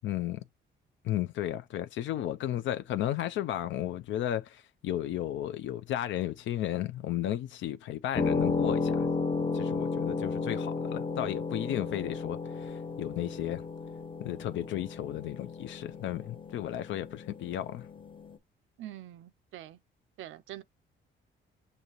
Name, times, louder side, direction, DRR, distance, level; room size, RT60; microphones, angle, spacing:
voice 1, 0.0-0.4 1.0-9.1 9.5-13.6 14.2-17.9, left 12 dB, 75° left, 0.4 m, -34 dB
sound 1, 8.2-18.4, left 4 dB, 25° left, 0.6 m, -33 dB
voice 2, 18.8-19.8 20.2-20.6, right 13 dB, 75° right, 0.5 m, -44 dB
6.6 x 2.7 x 2.9 m
cardioid pair, 90°, 20 cm